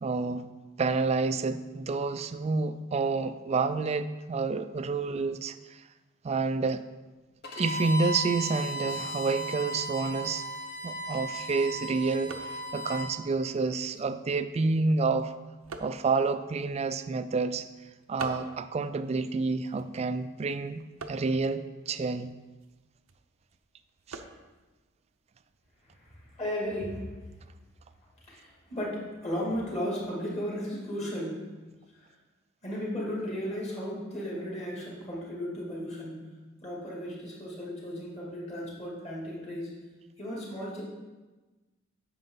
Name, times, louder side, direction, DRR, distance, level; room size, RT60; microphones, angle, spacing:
voice 1, 0.0-0.5 0.8-5.8 6.2-6.8 7.6-10.5 10.8-15.3 15.8-17.7 18.1-20.8 21.1-22.3 24.1-24.2, right 4 dB, 30° right, 12 dB, 0.3 m, -29 dB
Bowed string instrument, 7.4-13.1, right 1 dB, 50° left, 1.2 m, -36 dB
sound 1, 10.8-26.3, right 4 dB, 90° right, 0.7 m, -49 dB
voice 2, 26.0-27.1 28.3-31.4 31.9-32.1 32.6-36.2 36.6-39.7 40.2-40.8, equal, 35° left, -4 dB, 2.5 m, -35 dB
9.1 x 6.6 x 3.8 m, 1.2 s
head